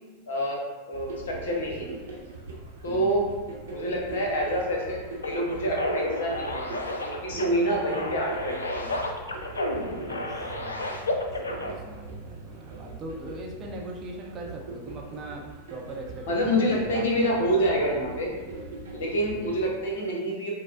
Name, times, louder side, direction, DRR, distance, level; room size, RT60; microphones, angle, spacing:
voice 1, 0.3-1.9 2.8-3.3 3.7-8.9 16.3-18.3 18.9-20.5, equal, 60° left, -1 dB, 0.8 m, -27 dB
sound 1, 0.9-19.7, right 3 dB, 60° right, 0.8 m, -41 dB
voice 2, 2.9-3.3 10.1-15.4 15.7-17.1 17.3-17.4 19.3-19.6, right 1 dB, 30° right, -1 dB, 0.6 m, -41 dB
sound 2, 5.2-11.7, left 1 dB, 75° left, 0.4 m, -32 dB
5.3 x 2.0 x 2.4 m, 1.2 s
figure-of-eight pair, 90°, 0 cm